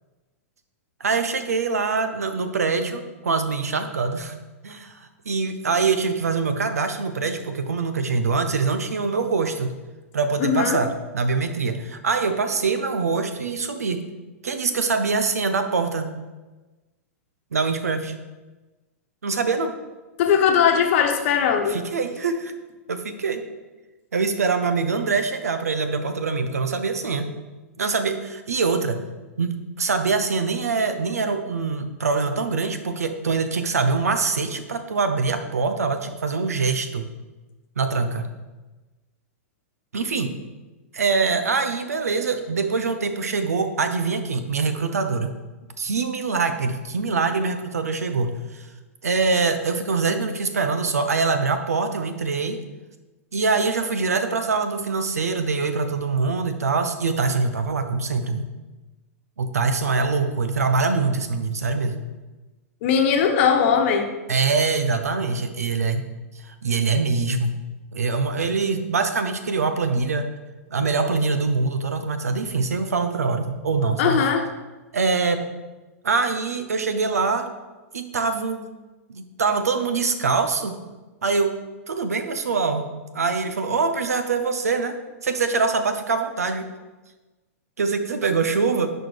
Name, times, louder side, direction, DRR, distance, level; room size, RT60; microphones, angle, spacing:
voice 1, 1.0-4.3 4.6-4.9 5.2-9.7 10.1-14.0 14.4-16.1 17.5-18.1 19.2-19.7 21.7-22.5 22.9-23.4 24.1-27.3 27.8-29.0 29.4-37.0 37.8-38.3 39.9-40.3 40.9-45.3 45.8-48.7 49.0-52.6 53.3-58.5 59.4-61.9 64.3-66.0 66.4-67.6 67.9-70.3 70.7-74.3 74.9-75.4 76.0-77.5 77.9-78.6 79.1-80.8 81.2-81.6 81.9-82.9 83.1-85.0 85.2-86.7 87.8-88.9, right 4 dB, 85° right, 9 dB, 0.7 m, -24 dB
voice 2, 10.4-10.8 20.2-21.8 62.8-64.1 74.0-74.5, left 7 dB, 55° left, 4 dB, 1.0 m, -19 dB
10.5 x 4.4 x 3.4 m, 1.2 s
hypercardioid pair, 110°, 8 cm